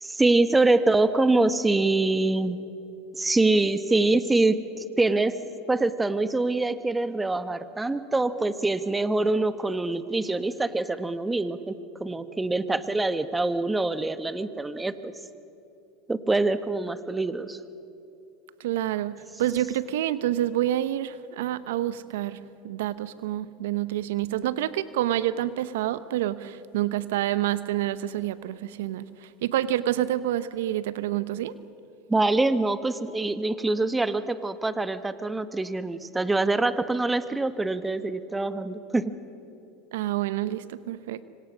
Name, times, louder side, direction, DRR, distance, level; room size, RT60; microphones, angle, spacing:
voice 1, 0.0-2.6 3.1-5.4 5.7-11.7 12.0-15.1 16.1-17.6 32.1-39.1, right 2 dB, 10° right, 12 dB, 1.3 m, -25 dB
voice 2, 18.6-19.1 19.4-22.4 22.6-31.5 39.9-41.2, right 13 dB, 75° right, 15 dB, 0.8 m, -28 dB
26.5 x 25.5 x 6.3 m, 2.7 s
hypercardioid pair, 85°, 0 cm